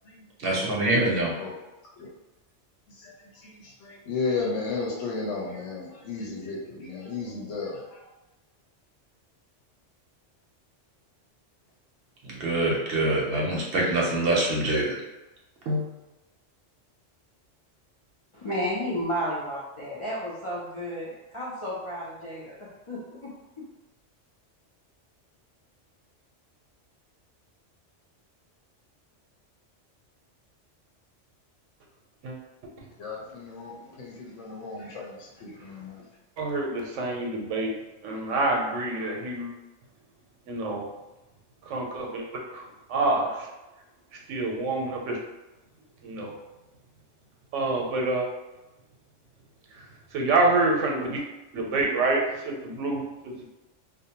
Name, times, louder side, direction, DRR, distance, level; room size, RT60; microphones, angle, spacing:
voice 1, 0.4-1.3 12.2-14.9 15.7-15.8, right 2 dB, 60° right, -3 dB, 0.7 m, -25 dB
voice 2, 3.4-8.1 33.0-36.0, left 4 dB, 75° left, -3 dB, 1.0 m, -34 dB
voice 3, 18.3-23.3 23.6-23.7, equal, 60° left, -7 dB, 0.3 m, -32 dB
voice 4, 36.4-37.7 38.0-39.5 40.5-40.8 41.7-42.6 42.9-43.3 44.3-45.2 46.0-46.3 47.5-48.3 50.1-51.2 51.5-53.5, right 2 dB, 85° right, 0 dB, 0.9 m, -27 dB
2.6 x 2.1 x 2.8 m, 1.0 s
omnidirectional pair, 1.3 m